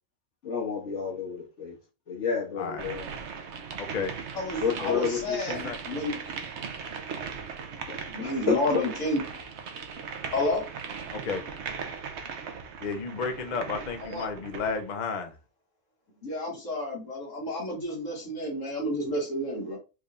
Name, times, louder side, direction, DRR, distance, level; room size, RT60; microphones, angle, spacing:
voice 1, 0.4-1.8 2.1-3.1 4.6-5.7 7.9-9.0, left 6 dB, 70° left, 2.0 m, -30 dB
sound 1, 2.8-14.8, right 6 dB, 65° right, 1.0 m, -38 dB
voice 2, 3.8-4.1 4.8-5.0 5.6-5.8 11.1-11.4 12.8-15.3, left 5 dB, 45° left, 0.7 m, -32 dB
voice 3, 4.4-5.6 5.9-6.1 8.1-9.2 10.3-10.6 14.1-14.3 16.2-19.8, left 1 dB, 85° left, 2.1 m, -30 dB
4.6 x 3.4 x 2.5 m
omnidirectional pair, 1.3 m